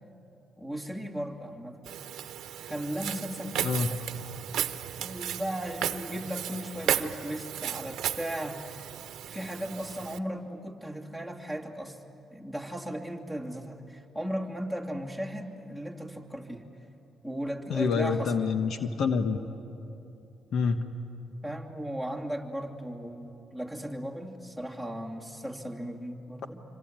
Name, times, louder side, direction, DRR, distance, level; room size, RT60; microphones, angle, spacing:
voice 1, 0.6-2.0 2.6-4.0 5.0-8.9 9.2-12.0 12.3-16.7 17.2-18.4 21.4-26.6, equal, 10° left, 1 dB, 2.9 m, -36 dB
Walk footsteps, 1.9-10.2, right 10 dB, 75° right, 0.9 m, -34 dB
voice 2, 17.7-19.4 20.5-20.8, left 5 dB, 65° left, 8 dB, 1.3 m, -27 dB
26.0 x 25.5 x 9.0 m, 2.9 s
cardioid pair, 90°, 0 cm